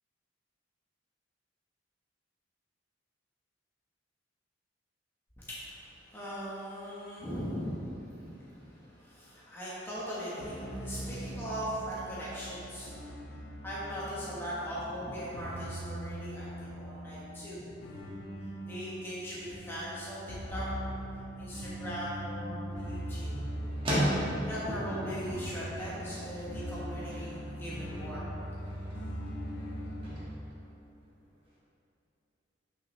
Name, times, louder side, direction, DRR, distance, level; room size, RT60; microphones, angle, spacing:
voice 1, 5.4-17.7 18.4-23.5 24.4-28.3, equal, 10° left, -9 dB, 1.2 m, -40 dB
sound 1, 10.4-30.2, equal, 80° left, 1.4 m, -41 dB
sound 2, 21.8-31.6, equal, 30° right, 1.6 m, -39 dB
9.2 x 5.5 x 3.2 m, 2.9 s
head